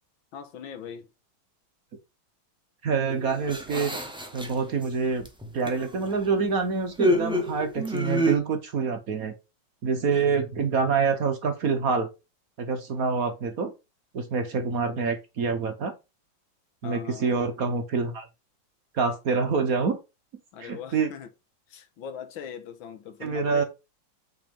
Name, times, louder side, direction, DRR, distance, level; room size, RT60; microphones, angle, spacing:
voice 1, 0.3-1.1 16.8-17.4 20.5-21.3 21.7-23.6, left 8 dB, 80° left, 1.7 m, -40 dB
voice 2, 2.8-4.0 4.3-5.3 5.5-9.3 9.8-12.1 12.6-13.7 14.1-15.9 16.8-18.3 18.9-20.0 20.6-21.1 23.2-23.6, right 5 dB, 55° right, 1.2 m, -26 dB
sound 1, 3.1-4.8 5.2-6.3 7.0-8.4, equal, 5° right, 0.6 m, -28 dB
6.1 x 3.9 x 5.2 m
omnidirectional pair, 2.2 m